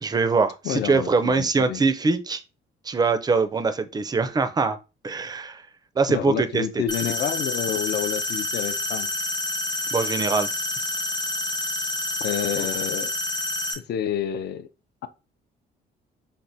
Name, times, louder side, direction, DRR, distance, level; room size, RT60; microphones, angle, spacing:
voice 1, 0.0-2.4 2.9-4.8 5.0-5.6 6.0-6.8 9.9-10.5, right 4 dB, 20° right, 0.4 m, -23 dB
voice 2, 0.6-1.8 6.1-9.1 12.2-13.1 13.9-14.7, left 9 dB, 60° left, 0.4 m, -28 dB
sound 1, 6.9-13.7, left 1 dB, 20° left, 0.7 m, -28 dB
3.3 x 2.1 x 2.6 m
cardioid pair, 90°, 20 cm